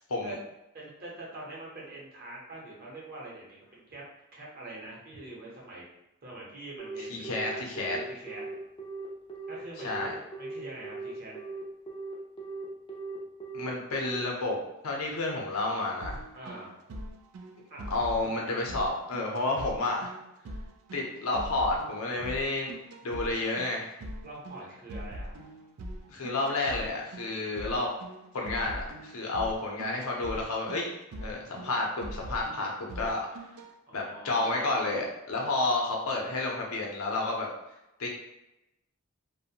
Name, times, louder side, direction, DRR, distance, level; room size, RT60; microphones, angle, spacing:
voice 1, 0.7-4.0 4.3-5.9 6.2-8.4 9.5-11.3 16.3-16.8 17.7-17.9 24.2-25.3 33.9-35.0, right 2 dB, 45° right, -4 dB, 0.8 m, -44 dB
Telephone, 6.8-14.2, right 4 dB, 20° left, 0.4 m, -39 dB
voice 2, 7.1-8.0 9.8-10.1 13.5-14.6 14.8-16.2 17.9-20.1 20.9-22.7 23.0-23.9 26.1-27.9 28.3-30.9 31.2-33.3 33.9-37.5 38.0-38.1, left 2 dB, 85° left, -1 dB, 0.6 m, -30 dB
sound 1, 16.0-33.7, right 1 dB, 85° right, 0.4 m, -42 dB
2.5 x 2.1 x 2.7 m, 0.90 s
head